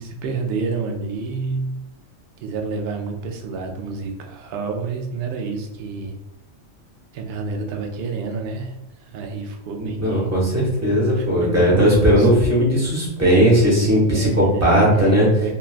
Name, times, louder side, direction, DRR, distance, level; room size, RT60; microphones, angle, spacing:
voice 1, 0.0-1.7 2.4-6.1 7.1-8.7 9.1-10.3 11.2-12.3 14.1-15.5, right 4 dB, 65° right, 2 dB, 0.7 m, -29 dB
voice 2, 9.8-15.3, equal, 15° right, -5 dB, 0.7 m, -17 dB
3.2 x 2.2 x 2.4 m, 0.92 s
omnidirectional pair, 1.3 m